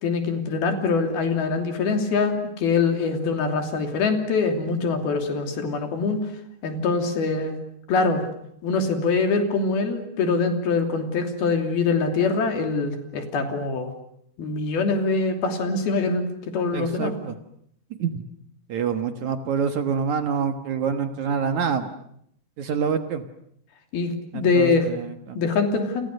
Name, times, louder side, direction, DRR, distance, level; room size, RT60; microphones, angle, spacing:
voice 1, 0.0-6.2 6.6-7.5 7.9-8.2 8.6-13.9 14.4-16.3 16.5-17.1 23.9-24.9 25.4-26.1, left 4 dB, 75° left, 5 dB, 4.8 m, -23 dB
voice 2, 16.7-17.4 18.0-18.2 18.7-21.9 22.6-23.2 24.3-25.4, right 6 dB, 60° right, 8 dB, 2.4 m, -26 dB
29.0 x 28.5 x 6.6 m, 0.71 s
omnidirectional pair, 4.4 m